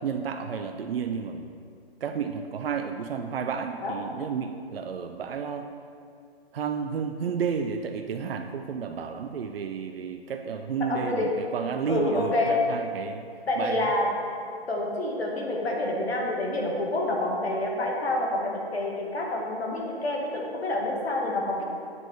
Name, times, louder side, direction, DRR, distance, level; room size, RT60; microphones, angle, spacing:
voice 1, 0.0-1.5 2.0-5.7 6.5-13.3 13.6-13.9, right 6 dB, 65° right, 6 dB, 0.5 m, -31 dB
voice 2, 10.8-11.3 11.9-12.6 13.5-14.1 14.7-21.6, left 2 dB, 75° left, -1 dB, 1.8 m, -28 dB
8.2 x 4.9 x 5.1 m, 2.3 s
figure-of-eight pair, 145°, 32 cm